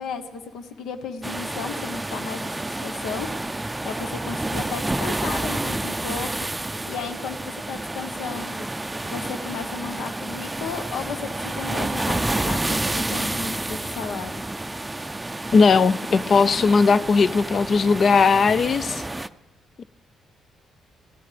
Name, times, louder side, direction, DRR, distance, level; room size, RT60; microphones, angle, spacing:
voice 1, 0.0-2.5 2.8-3.5 3.8-6.5 6.9-8.7 9.0-14.4, left 5 dB, 85° left, 1.1 m, -34 dB
sound 1, 1.2-19.3, right 2 dB, 15° right, 0.5 m, -29 dB
voice 2, 15.5-19.0 19.8-19.9, left 5 dB, 50° left, 0.4 m, -18 dB
26.5 x 16.0 x 3.4 m
cardioid pair, 90°, 0 cm